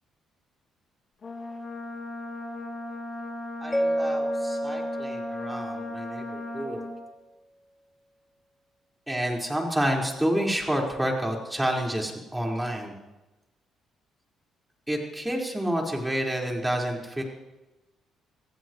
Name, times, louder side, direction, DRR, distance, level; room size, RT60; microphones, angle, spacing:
Brass instrument, 1.2-7.0, left 2 dB, 50° left, 3.1 m, -37 dB
voice 1, 3.6-6.8 9.1-13.0 14.9-17.2, equal, 10° right, -1 dB, 5.2 m, -29 dB
Mallet percussion, 3.7-6.7, right 1 dB, 10° left, 1.0 m, -30 dB
26.0 x 16.0 x 3.3 m, 1.0 s
supercardioid pair, 65°, 0 cm